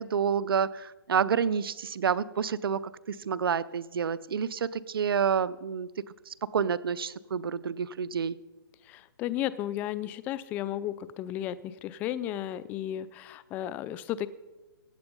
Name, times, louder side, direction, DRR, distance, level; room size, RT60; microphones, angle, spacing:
voice 1, 0.0-2.8 3.1-5.9 6.3-8.4, right 7 dB, 70° right, 18 dB, 0.6 m, -29 dB
voice 2, 8.9-14.3, left 12 dB, 10° left, 18 dB, 0.3 m, -34 dB
15.5 x 8.8 x 5.3 m, 1.1 s
hypercardioid pair, 150°, 13 cm